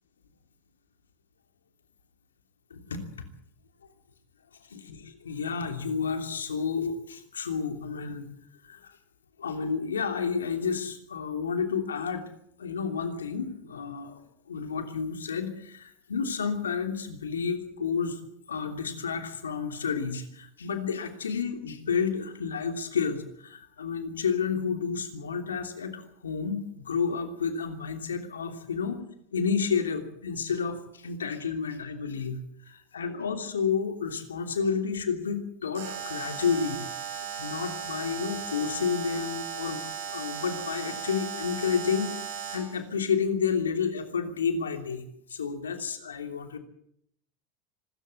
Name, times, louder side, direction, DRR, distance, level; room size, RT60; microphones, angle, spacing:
voice 1, 2.7-3.3 4.7-8.3 8.6-9.0 9.4-12.2 12.6-14.2 14.5-18.2 18.5-29.0 29.3-32.4 32.7-36.9 37.1-39.8 40.1-45.0 45.3-46.6, left 6 dB, 90° left, 7 dB, 3.0 m, -30 dB
Alarm, 35.7-42.8, right 8 dB, 75° right, 7.0 m, -37 dB
25.5 x 14.0 x 8.4 m, 0.70 s
hypercardioid pair, 90°, 0 cm